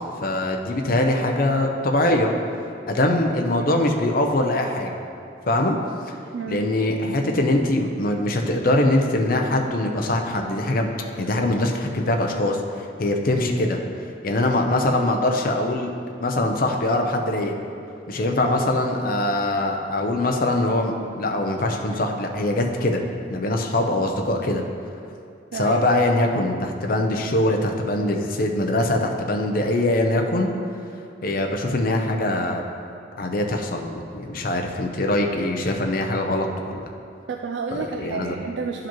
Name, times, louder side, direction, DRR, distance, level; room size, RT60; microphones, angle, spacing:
voice 1, 0.2-2.3 2.9-5.0 5.5-5.8 6.5-10.9 11.2-12.6 13.0-13.8 14.2-15.9 16.2-17.6 18.1-23.0 23.3-24.6 25.5-30.5 31.2-32.6 33.2-36.8 37.7-38.3, left 1 dB, 50° left, 2 dB, 0.6 m, -22 dB
voice 2, 6.3-6.7 25.5-25.8 37.3-38.9, right 5 dB, 70° right, 4 dB, 0.3 m, -30 dB
11.5 x 4.9 x 3.0 m, 2.5 s
head